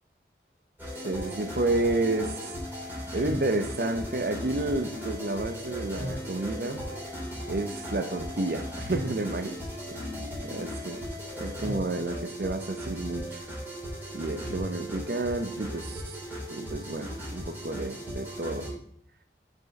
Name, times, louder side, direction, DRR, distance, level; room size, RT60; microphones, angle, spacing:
sound 1, 0.8-18.7, equal, 10° right, 3.3 m, -37 dB
voice 1, 0.9-2.6 3.1-6.8 7.5-9.6 9.9-10.0 10.4-11.0 11.4-13.4 14.1-16.2 16.5-18.7, right 2 dB, 55° right, 7 dB, 0.6 m, -30 dB
6.0 x 5.4 x 5.2 m, 0.66 s
head